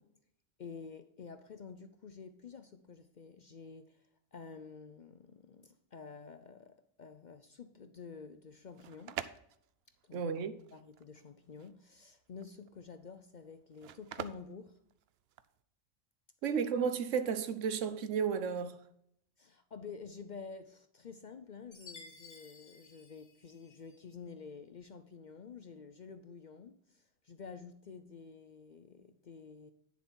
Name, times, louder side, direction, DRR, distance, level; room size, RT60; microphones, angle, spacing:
voice 1, 0.6-9.2 10.0-10.2 10.7-14.8 19.4-29.7, left 5 dB, 50° left, 0.5 m, -50 dB
sound 1, 8.5-15.6, right 10 dB, 65° right, 0.7 m, -47 dB
voice 2, 10.1-10.5 16.4-18.8, right 6 dB, 85° right, 1.1 m, -33 dB
Chime, 21.7-24.0, left 4 dB, 90° left, 2.9 m, -55 dB
9.4 x 6.9 x 4.4 m
omnidirectional pair, 1.3 m